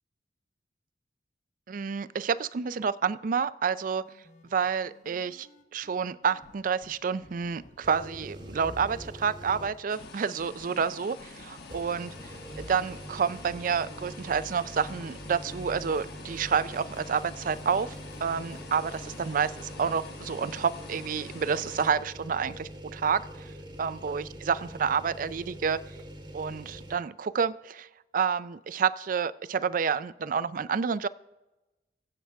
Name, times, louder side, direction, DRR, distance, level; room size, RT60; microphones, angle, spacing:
voice 1, 1.7-4.1 4.5-5.5 5.7-12.1 12.6-18.0 18.2-23.5 23.8-25.8 26.3-27.9 28.1-31.1, right 6 dB, 50° right, 17 dB, 0.4 m, -29 dB
sound 1, 4.0-19.3, left 2 dB, 40° left, 0.9 m, -56 dB
sound 2, 7.8-10.0 10.4-10.5 11.6-27.0, equal, 25° right, 1.1 m, -44 dB
sound 3, 9.9-21.9, left 3 dB, 60° left, 1.4 m, -47 dB
22.5 x 7.8 x 3.4 m, 1.0 s
head